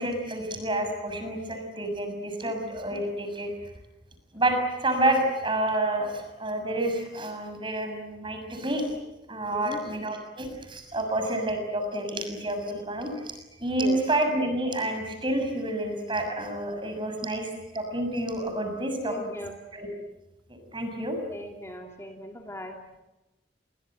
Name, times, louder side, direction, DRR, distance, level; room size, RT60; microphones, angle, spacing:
voice 1, 0.0-3.5 4.3-8.8 9.3-13.3 13.6-19.1 19.7-19.9 20.5-21.2, right 1 dB, 30° right, 6 dB, 6.6 m, -29 dB
voice 2, 19.0-19.5 21.3-22.8, equal, 15° left, 2 dB, 2.8 m, -38 dB
29.5 x 23.5 x 8.0 m, 1.0 s
head